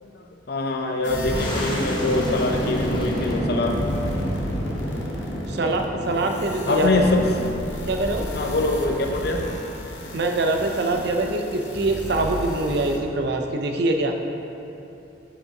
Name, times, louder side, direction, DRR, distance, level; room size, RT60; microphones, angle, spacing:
voice 1, 0.0-3.8 6.7-7.3 8.3-9.4, left 2 dB, 60° left, 3 dB, 0.6 m, -24 dB
sound 1, 1.0-3.4 3.6-13.0, left 1 dB, 90° left, 0.8 m, -34 dB
sound 2, 1.1-10.3, equal, 25° left, 1.0 m, -30 dB
voice 2, 5.5-7.1 7.9-8.3 10.1-14.2, right 2 dB, 65° right, 3 dB, 0.6 m, -24 dB
7.2 x 7.1 x 2.9 m, 2.8 s
head